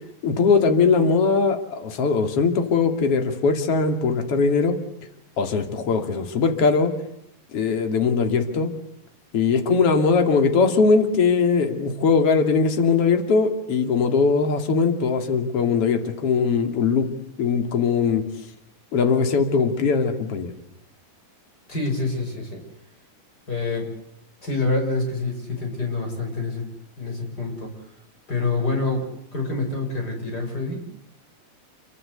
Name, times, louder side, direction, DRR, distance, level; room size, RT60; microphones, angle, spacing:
voice 1, 0.2-4.8 5.4-6.9 7.5-8.7 9.3-17.1 17.4-18.2 18.9-20.5, left 5 dB, 45° left, 6 dB, 3.4 m, -20 dB
voice 2, 21.7-22.6 23.5-24.0 24.4-26.7 27.0-27.8 28.3-31.0, left 3 dB, 25° left, 2 dB, 7.1 m, -27 dB
28.0 x 24.5 x 8.3 m, 0.76 s
omnidirectional pair, 4.0 m